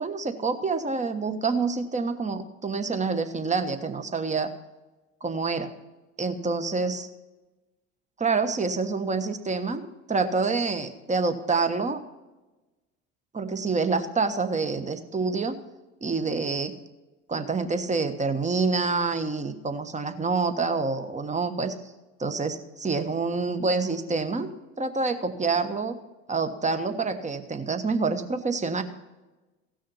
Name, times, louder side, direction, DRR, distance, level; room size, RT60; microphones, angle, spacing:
voice 1, 0.0-4.5 5.2-5.7 6.2-7.1 8.2-12.0 13.3-15.5 16.0-16.7 17.3-21.7 22.2-24.5 24.8-26.0 26.3-28.8, right 4 dB, 20° right, 8 dB, 1.3 m, -27 dB
16.0 x 6.4 x 5.6 m, 1.1 s
hypercardioid pair, 75°, 37 cm